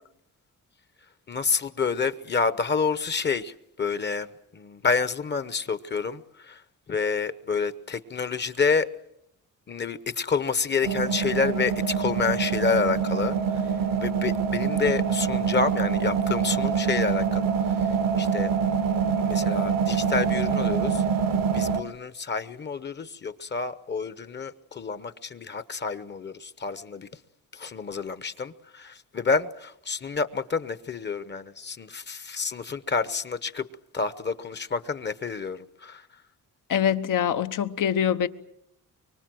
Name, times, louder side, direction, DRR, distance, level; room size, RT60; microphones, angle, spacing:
voice 1, 1.3-4.3 4.5-6.2 6.5-6.6 6.9-8.9 9.7-13.4 14.0-17.4 18.2-18.5 19.3-21.0 21.5-27.1 27.5-33.7 33.9-36.0, left 5 dB, 35° left, 0.9 m, -28 dB
sound 1, 10.8-21.8, right 6 dB, 90° right, 1.4 m, -25 dB
voice 2, 36.7-38.3, left 9 dB, 75° left, 1.1 m, -24 dB
24.5 x 24.0 x 7.7 m
wide cardioid pair, 145°, 32 cm